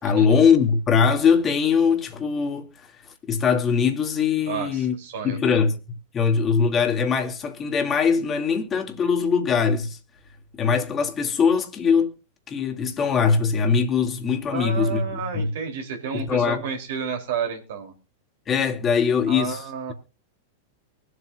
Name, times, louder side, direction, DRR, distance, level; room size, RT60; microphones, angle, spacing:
voice 1, 0.0-2.7 3.3-4.9 5.2-5.8 6.1-10.0 10.6-12.1 12.5-15.5 16.1-16.6 18.5-19.6, left 6 dB, 25° left, 2.3 m, -21 dB
voice 2, 4.5-5.6 14.5-17.9 19.3-19.9, right 7 dB, 65° right, 3.2 m, -31 dB
23.5 x 8.1 x 2.5 m
hypercardioid pair, 100°, 0 cm